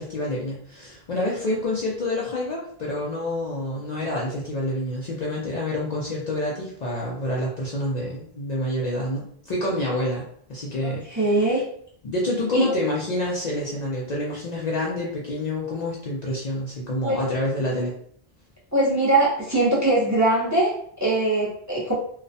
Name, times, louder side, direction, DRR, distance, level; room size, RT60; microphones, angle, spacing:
voice 1, 0.0-11.3 12.0-17.9, left 1 dB, 55° left, -4 dB, 0.5 m, -28 dB
voice 2, 10.8-11.6 12.5-12.6 17.0-17.2 18.7-21.9, right 2 dB, 20° right, -7 dB, 0.5 m, -22 dB
2.3 x 2.1 x 2.6 m, 0.62 s
omnidirectional pair, 1.0 m